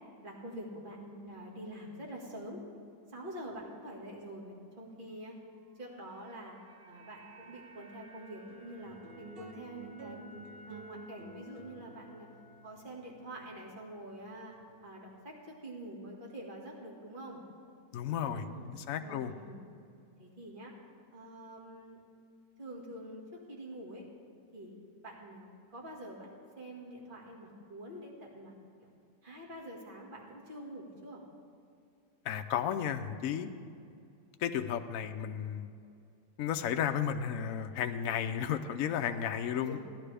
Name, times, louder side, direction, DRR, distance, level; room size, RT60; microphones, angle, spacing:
voice 1, 0.2-2.6 3.1-5.3 5.8-6.6 6.8-10.3 10.7-12.3 12.6-14.5 14.8-17.4 18.2-19.7 20.2-20.7 21.1-22.0 22.6-24.0 24.5-24.7 25.0-26.3 26.6-28.5 28.8-28.9 29.2-31.2 39.6-39.8, right 1 dB, 30° right, -2 dB, 1.9 m, -46 dB
sound 1, 5.6-13.9 14.2-14.4, right 1 dB, 70° right, 1.4 m, -57 dB
sound 2, 8.5-15.1, right 3 dB, 50° right, 0.7 m, -51 dB
voice 2, 17.9-19.3 32.2-33.5 34.4-35.7 36.4-39.8, left 8 dB, 65° left, 7 dB, 0.9 m, -33 dB
16.5 x 11.0 x 3.4 m, 2.5 s
omnidirectional pair, 1.7 m